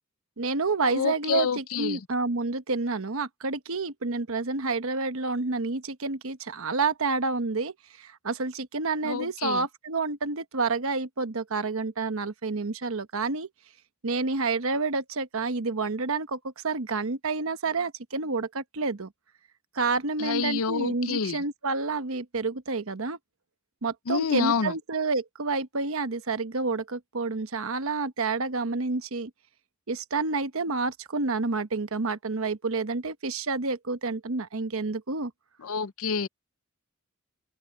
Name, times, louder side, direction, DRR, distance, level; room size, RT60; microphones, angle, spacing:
voice 1, 0.4-13.5 14.0-19.1 19.7-23.2 23.8-29.3 29.9-35.3, right 3 dB, 65° right, 1.1 m, -29 dB
voice 2, 0.9-2.0 9.0-9.7 20.2-21.4 24.1-24.7 35.6-36.3, left 6 dB, 70° left, 0.6 m, -28 dB
open air
head